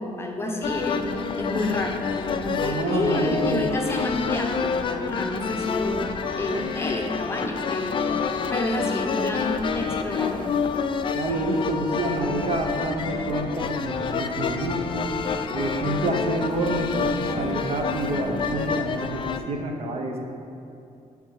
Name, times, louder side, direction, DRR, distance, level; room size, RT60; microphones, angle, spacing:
voice 1, 0.0-10.5, left 2 dB, 20° left, 1 dB, 0.8 m, -29 dB
sound 1, 0.6-19.4, left 5 dB, 40° left, 0.4 m, -28 dB
voice 2, 2.6-3.7 11.1-15.1 15.5-20.3, right 2 dB, 50° right, 2 dB, 0.9 m, -28 dB
10.5 x 3.6 x 4.7 m, 2.6 s
cardioid pair, 115°, 13 cm